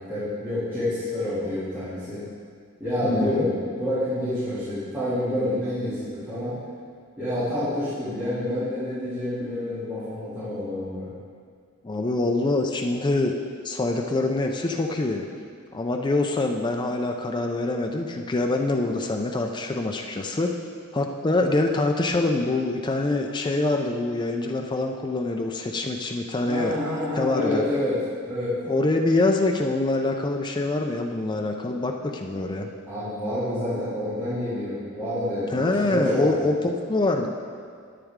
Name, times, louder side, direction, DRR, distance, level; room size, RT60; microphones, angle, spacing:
voice 1, 0.0-2.2 2.8-6.6 7.2-11.1 26.5-28.0 28.2-28.5 32.9-36.4, left 1 dB, 10° right, -16 dB, 2.7 m, -28 dB
voice 2, 3.0-3.5 11.8-13.4 13.6-15.3 15.7-20.6 20.9-26.8 27.1-27.6 28.7-32.7 35.5-37.3, left 2 dB, 20° left, 3 dB, 0.4 m, -25 dB
10.0 x 9.2 x 3.6 m, 2.1 s
head